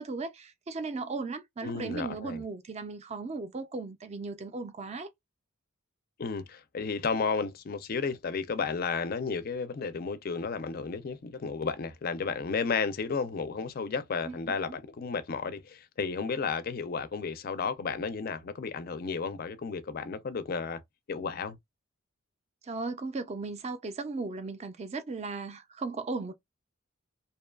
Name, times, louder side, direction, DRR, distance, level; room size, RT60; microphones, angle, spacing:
voice 1, 0.0-5.1 14.3-14.8 22.6-26.3, right 3 dB, 30° right, 0.4 m, -36 dB
voice 2, 1.6-2.4 6.2-20.8 21.1-21.6, left 5 dB, 45° left, 0.4 m, -33 dB
2.7 x 2.3 x 2.2 m
head